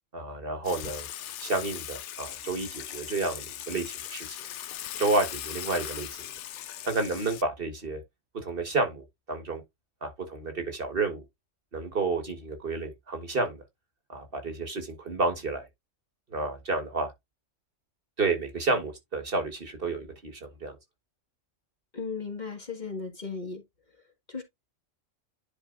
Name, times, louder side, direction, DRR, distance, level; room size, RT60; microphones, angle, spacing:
voice 1, 0.1-1.1 1.4-4.4 5.0-6.1 6.8-8.0 8.4-9.6 10.0-11.2 11.7-13.6 14.1-15.7 16.3-17.1 18.2-20.8, right 3 dB, 45° right, 1.5 m, -30 dB
Water / Water tap faucet / Sink (filling or washing), 0.6-7.4, left 11 dB, 70° left, 0.9 m, -39 dB
voice 2, 21.9-23.6 24.3-24.4, left 4 dB, 35° left, 1.8 m, -36 dB
10.5 x 4.3 x 2.4 m
omnidirectional pair, 1.3 m